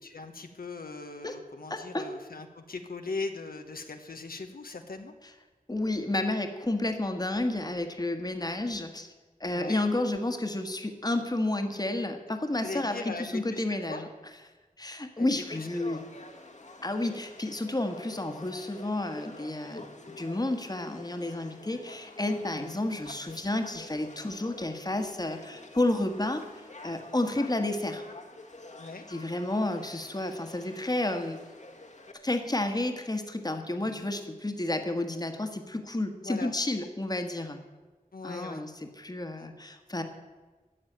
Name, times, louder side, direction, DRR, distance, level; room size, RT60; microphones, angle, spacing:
voice 1, 0.0-5.1 9.5-9.8 12.6-14.0 15.2-15.3 15.5-16.0 22.6-22.8 28.8-29.0 33.8-34.1 36.2-36.5 38.1-38.6 39.4-39.5, left 3 dB, 85° left, 5 dB, 1.0 m, -40 dB
voice 2, 1.7-2.1 5.7-9.1 9.4-14.1 14.8-16.0 16.8-19.9 20.2-26.5 26.8-28.0 29.1-31.4 32.2-37.6 38.2-38.7 39.0-40.0, left 2 dB, 25° left, 6 dB, 1.4 m, -31 dB
Conversation / Crowd, 15.5-32.1, left 2 dB, 55° left, 1.4 m, -48 dB
12.0 x 7.4 x 9.1 m, 1.3 s
wide cardioid pair, 70°, 15 cm